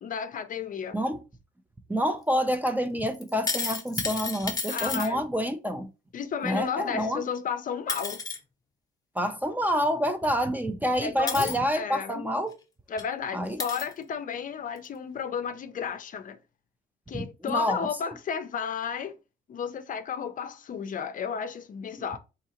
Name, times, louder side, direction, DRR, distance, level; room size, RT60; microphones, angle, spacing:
voice 1, 0.0-1.0 4.7-5.2 6.1-8.2 11.0-12.3 12.9-16.4 17.1-19.2 19.5-22.2, left 7 dB, 45° left, 0.5 m, -33 dB
voice 2, 1.9-5.9 6.4-7.2 9.2-12.5 13.3-13.6 17.1-17.8 18.1-18.2, equal, 10° right, 0.4 m, -28 dB
sound 1, 3.2-5.1 7.3-7.4 7.9-8.4 10.2-10.3 11.3-11.6 12.5-12.6 13.0-13.1 13.6-13.9 14.8-14.9, left 4 dB, 20° left, 0.8 m, -32 dB
3.7 x 2.8 x 2.9 m
cardioid pair, 95°, 19 cm